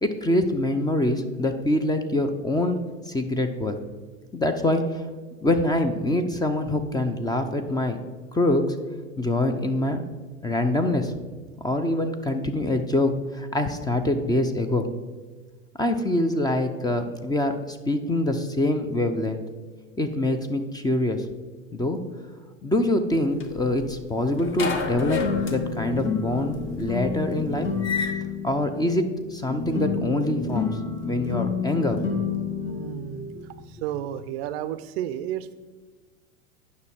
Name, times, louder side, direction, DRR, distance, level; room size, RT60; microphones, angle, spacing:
voice 1, 0.0-3.8 4.3-5.0 5.4-8.0 8.3-8.8 9.2-10.0 10.4-11.1 11.6-14.9 15.8-19.4 20.0-21.2 21.7-22.0 22.6-27.7 28.4-30.7 31.0-32.0 33.4-33.5, left 1 dB, 10° left, 7 dB, 0.6 m, -25 dB
sound 1, 23.1-24.1 24.4-28.1, left 5 dB, 30° left, 1.1 m, -31 dB
sound 2, 24.9-34.2, left 5 dB, 65° left, 2.0 m, -30 dB
voice 2, 32.6-33.3 33.8-35.6, right 11 dB, 50° right, 13 dB, 0.5 m, -32 dB
9.5 x 5.8 x 4.5 m, 1.4 s
hypercardioid pair, 90°, 40 cm